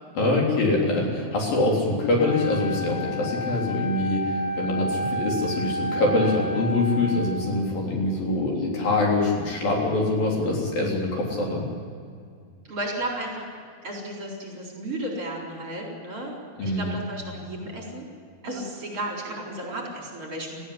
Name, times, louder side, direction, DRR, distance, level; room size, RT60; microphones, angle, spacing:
voice 1, 0.2-11.6 16.6-16.9, left 2 dB, 60° left, -2 dB, 5.3 m, -24 dB
Wind instrument woodwind instrument, 2.2-7.6, equal, 85° left, 8.5 m, -31 dB
voice 2, 12.7-13.5 13.8-18.1 18.4-20.7, right 1 dB, 35° right, -1 dB, 4.9 m, -34 dB
19.0 x 15.5 x 9.9 m, 2.2 s
omnidirectional pair, 4.5 m